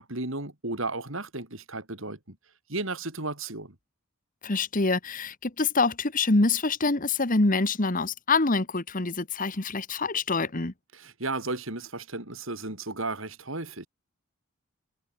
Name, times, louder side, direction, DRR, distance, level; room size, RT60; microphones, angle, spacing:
voice 1, 0.0-2.4 2.7-3.8 10.9-13.9, right 2 dB, 60° right, 3.8 m, -34 dB
voice 2, 4.4-10.7, left 3 dB, 40° left, 1.4 m, -25 dB
head